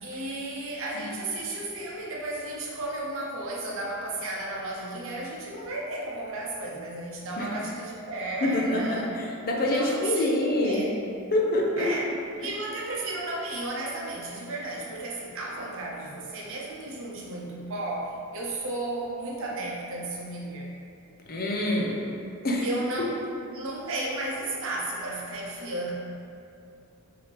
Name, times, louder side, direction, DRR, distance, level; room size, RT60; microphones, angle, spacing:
voice 1, 0.0-9.1 9.7-10.9 11.8-12.0 12.4-20.7 22.6-23.2 23.5-25.9, right 2 dB, 65° right, -3 dB, 0.8 m, -33 dB
voice 2, 8.4-10.9 11.3-11.9 21.3-22.0 22.4-22.7, left 1 dB, 45° left, -1 dB, 0.6 m, -26 dB
5.1 x 2.9 x 3.3 m, 2.6 s
head